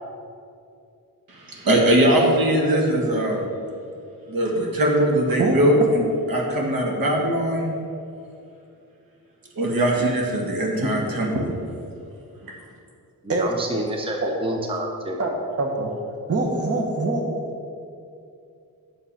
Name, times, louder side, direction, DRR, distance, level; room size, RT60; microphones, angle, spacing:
voice 1, 1.3-3.5 4.3-7.7 9.6-11.5 12.4-12.5, right 1 dB, 70° right, -1 dB, 2.0 m, -21 dB
voice 2, 13.2-15.2, right 1 dB, 15° right, 2 dB, 0.8 m, -28 dB
voice 3, 15.6-15.9 16.3-17.3, right 2 dB, 40° right, 1 dB, 1.3 m, -23 dB
8.8 x 6.7 x 5.8 m, 2.5 s
wide cardioid pair, 110°, 36 cm